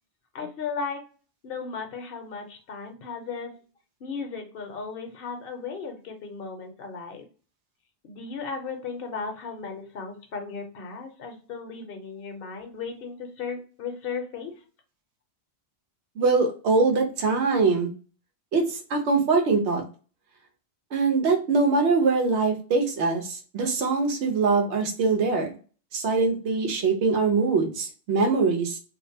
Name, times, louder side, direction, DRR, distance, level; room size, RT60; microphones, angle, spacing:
voice 1, 0.3-1.0 1.4-3.6 4.0-7.2 8.0-14.5, left 5 dB, 60° left, 4 dB, 0.8 m, -35 dB
voice 2, 16.2-17.9 18.5-19.8 20.9-25.5 25.9-28.8, right 4 dB, 90° right, 2 dB, 1.0 m, -23 dB
2.5 x 2.1 x 2.7 m, 0.37 s
omnidirectional pair, 1.1 m